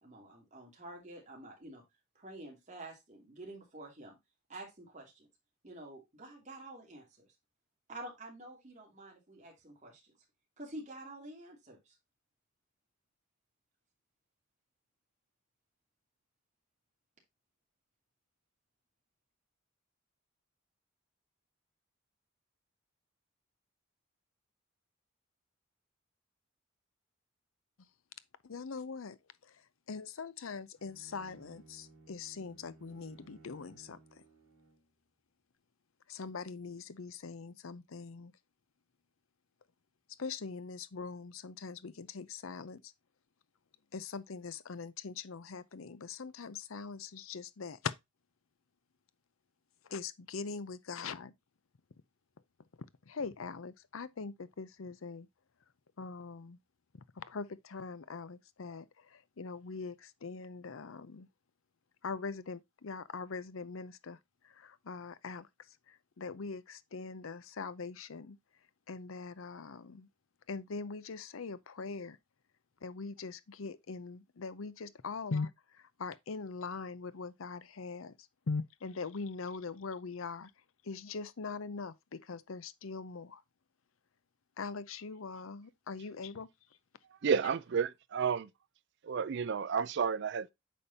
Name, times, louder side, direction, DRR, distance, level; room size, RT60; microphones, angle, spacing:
voice 1, 0.0-1.8 2.1-4.2 4.5-5.3 5.6-7.3 7.9-10.1 10.6-11.9, right 1 dB, 35° right, 2.9 m, -49 dB
voice 2, 28.4-29.2 29.4-29.5 29.9-34.0 36.1-38.3 40.2-42.8 43.9-47.9 49.9-51.3 53.1-55.3 56.0-56.6 57.2-61.3 62.0-64.2 64.4-65.5 65.9-68.4 68.9-70.1 70.5-72.2 72.8-78.1 78.5-80.5 80.8-83.4 84.6-86.5, left 4 dB, 75° left, 0.6 m, -42 dB
Bowed string instrument, 30.7-34.9, right 2 dB, 90° right, 2.3 m, -60 dB
voice 3, 87.2-88.5 89.0-90.5, right 6 dB, 55° right, 0.4 m, -31 dB
8.5 x 5.2 x 2.7 m
head